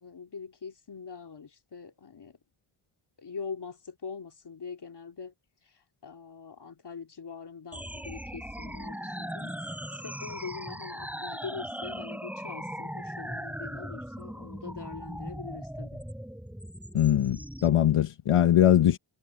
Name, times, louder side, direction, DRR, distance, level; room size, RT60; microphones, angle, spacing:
voice 1, 0.0-2.4 3.2-5.3 6.0-9.6 10.0-16.0, left 5 dB, 55° left, 2.9 m, -43 dB
sound 1, 7.7-17.7, equal, 5° right, 3.6 m, -39 dB
voice 2, 16.9-19.0, left 11 dB, 90° left, 1.1 m, -22 dB
wide cardioid pair, 95°, 50 cm